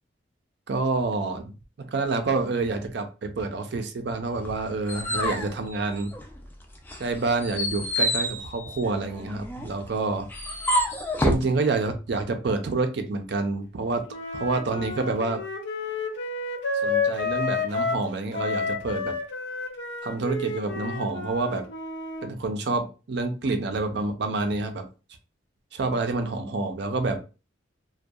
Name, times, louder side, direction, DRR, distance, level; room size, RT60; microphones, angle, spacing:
voice 1, 0.7-1.4 1.8-6.1 7.0-10.3 11.2-14.1 14.3-15.4 16.8-19.2 20.0-21.7 22.2-24.9 25.7-27.2, right 3 dB, 60° right, 6 dB, 0.5 m, -28 dB
sound 1, 4.4-6.4 6.8-11.5, equal, 10° left, 0.3 m, -28 dB
Wind instrument woodwind instrument, 14.1-18.1 18.3-22.3, left 4 dB, 65° left, 0.5 m, -30 dB
2.6 x 2.2 x 2.3 m, 0.32 s
head